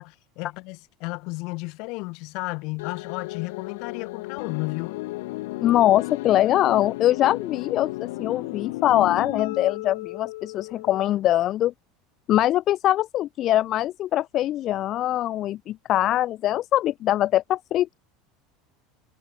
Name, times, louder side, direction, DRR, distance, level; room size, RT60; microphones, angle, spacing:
voice 1, 0.0-5.0, left 27 dB, 60° left, 1.7 m, -33 dB
sound 1, 2.8-11.2, left 21 dB, 80° left, 2.4 m, -34 dB
voice 2, 5.6-11.7 12.3-18.0, left 13 dB, 45° left, 0.5 m, -22 dB
supercardioid pair, 130°, 0 cm